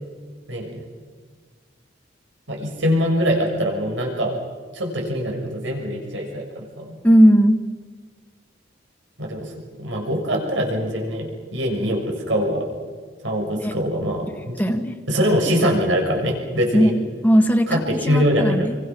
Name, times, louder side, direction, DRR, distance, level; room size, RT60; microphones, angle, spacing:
voice 1, 2.5-4.4 4.7-7.0 9.2-9.5 9.8-12.7 13.2-14.6 15.1-16.9 17.7-18.7, equal, 90° right, 1 dB, 6.7 m, -23 dB
voice 2, 7.0-7.6 13.6-13.7 14.6-14.9 16.7-16.9 17.2-17.7 18.0-18.8, equal, 10° left, 4 dB, 1.7 m, -16 dB
29.5 x 25.0 x 6.2 m, 1.5 s
head